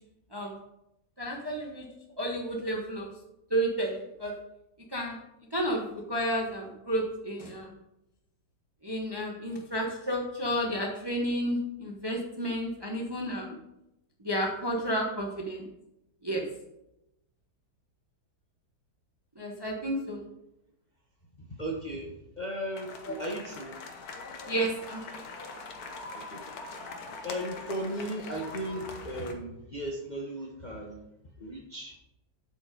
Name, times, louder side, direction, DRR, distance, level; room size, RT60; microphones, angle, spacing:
voice 1, 1.2-1.9 2.2-3.1 3.5-4.3 4.9-5.2 5.5-7.7 8.8-13.5 14.2-15.7 16.2-16.4 19.4-20.2 24.5-25.0, equal, 15° right, 0 dB, 0.9 m, -31 dB
voice 2, 21.4-23.7 26.1-26.4 27.2-31.0 31.4-32.0, right 1 dB, 30° left, -2 dB, 1.0 m, -36 dB
sound 1, 22.7-29.3, left 3 dB, 60° left, 1.4 m, -43 dB
8.1 x 5.3 x 5.1 m, 0.88 s
omnidirectional pair, 1.9 m